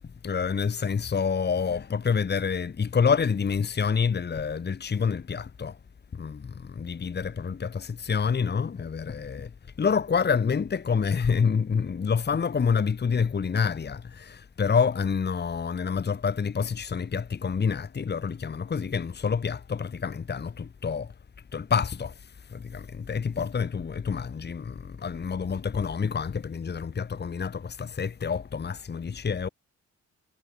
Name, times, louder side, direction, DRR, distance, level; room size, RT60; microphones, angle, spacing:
voice 1, 0.2-5.8 6.1-9.5 9.8-21.1 21.5-22.1 22.5-29.5, left 6 dB, 35° left, 1.8 m, -27 dB
cardioid pair, 90°, 30 cm